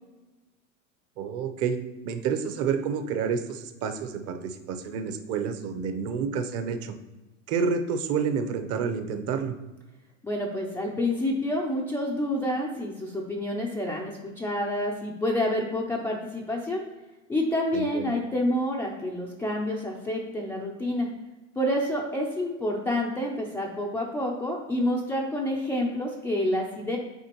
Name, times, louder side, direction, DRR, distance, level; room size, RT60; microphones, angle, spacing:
voice 1, 1.2-1.8 2.0-6.9 7.5-9.5 17.7-18.1, right 6 dB, 40° right, 9 dB, 0.7 m, -29 dB
voice 2, 10.2-16.8 17.3-21.1 21.6-27.0, left 1 dB, 5° left, -3 dB, 0.3 m, -28 dB
8.1 x 4.3 x 2.9 m, 1.1 s
supercardioid pair, 135°, 40 cm